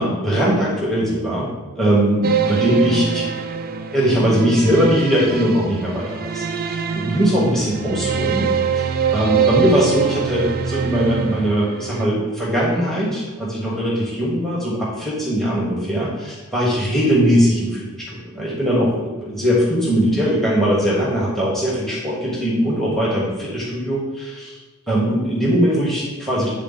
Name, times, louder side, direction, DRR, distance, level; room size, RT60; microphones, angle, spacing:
voice 1, 0.0-1.5 1.8-3.2 3.9-8.4 8.7-24.6 24.9-26.5, equal, ahead, -6 dB, 1.3 m, -20 dB
sound 1, 2.2-12.0, right 7 dB, 45° right, 0.4 m, -24 dB
8.6 x 3.7 x 4.0 m, 1.2 s
head